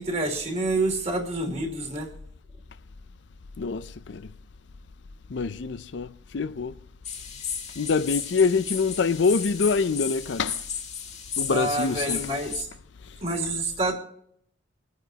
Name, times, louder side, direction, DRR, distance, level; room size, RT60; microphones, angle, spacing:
voice 1, 0.0-2.1 11.5-12.7 13.2-13.9, right 2 dB, 35° right, 2.8 m, -27 dB
voice 2, 3.6-4.3 5.3-6.7 7.8-10.6 11.4-12.2, left 4 dB, 65° left, 0.5 m, -25 dB
sound 1, 7.0-12.6, left 7 dB, 35° left, 2.0 m, -34 dB
26.5 x 9.3 x 2.9 m
head